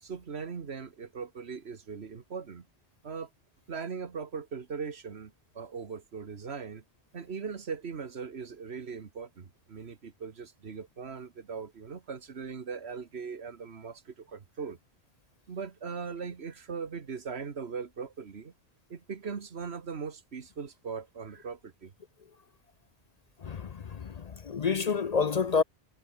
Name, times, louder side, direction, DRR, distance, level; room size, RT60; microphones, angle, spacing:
voice 1, 0.0-2.7 3.0-3.3 3.7-6.8 7.1-14.8 15.5-18.5 18.9-21.9, right 5 dB, 80° right, 1.7 m, -39 dB
voice 2, 23.4-25.6, left 5 dB, 45° left, 0.6 m, -29 dB
omnidirectional pair, 1.1 m